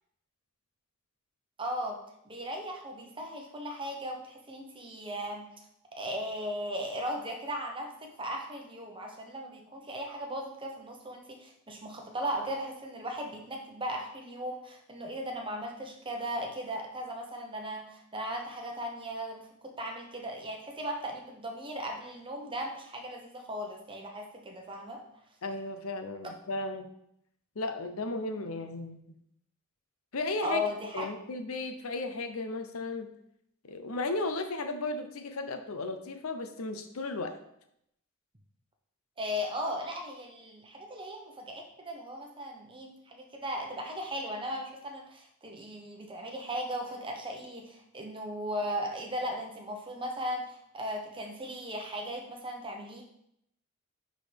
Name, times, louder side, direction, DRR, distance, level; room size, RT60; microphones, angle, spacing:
voice 1, 1.6-2.0 2.2-5.5 6.0-25.0 28.3-28.4 30.4-31.1 39.2-53.0, equal, 25° right, 1 dB, 1.0 m, -37 dB
voice 2, 25.4-26.9 27.6-29.0 30.1-30.6 30.9-33.1 33.6-37.4, left 2 dB, 65° left, 7 dB, 0.7 m, -35 dB
10.0 x 3.8 x 3.5 m, 0.76 s
head